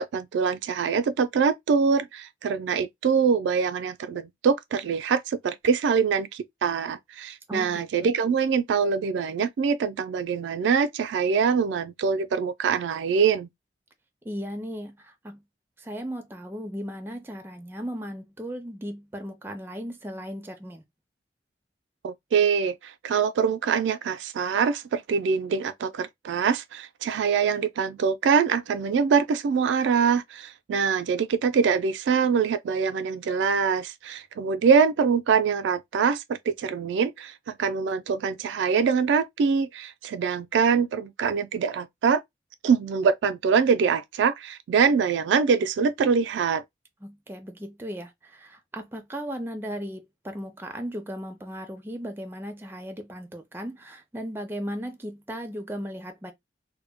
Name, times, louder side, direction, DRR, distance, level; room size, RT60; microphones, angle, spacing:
voice 1, 0.0-13.5 22.0-42.2 42.6-46.6, right 6 dB, 85° right, 0.3 m, -24 dB
voice 2, 7.5-8.1 14.2-15.4 15.8-20.8 47.0-56.3, equal, 10° right, 0.4 m, -36 dB
2.1 x 2.0 x 3.4 m
head